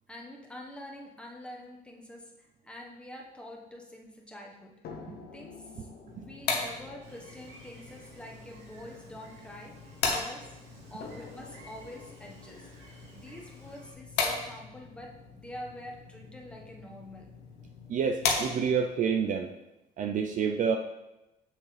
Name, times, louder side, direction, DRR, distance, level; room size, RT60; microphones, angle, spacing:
voice 1, 0.1-4.8 5.3-5.9 6.2-10.5 10.9-17.3, left 1 dB, 5° left, -1 dB, 1.2 m, -46 dB
sound 1, 4.8-10.1 11.0-15.0 15.9-16.0 16.5-16.6, left 5 dB, 70° left, 1.0 m, -51 dB
sound 2, 6.1-19.0, left 4 dB, 85° left, 1.3 m, -37 dB
Gull seagull, 7.0-13.9, right 2 dB, 85° right, 2.7 m, -55 dB
voice 2, 17.9-19.5 20.0-20.8, right 6 dB, 50° right, 4 dB, 0.5 m, -28 dB
7.2 x 6.4 x 3.3 m, 0.98 s
cardioid pair, 110°, 17 cm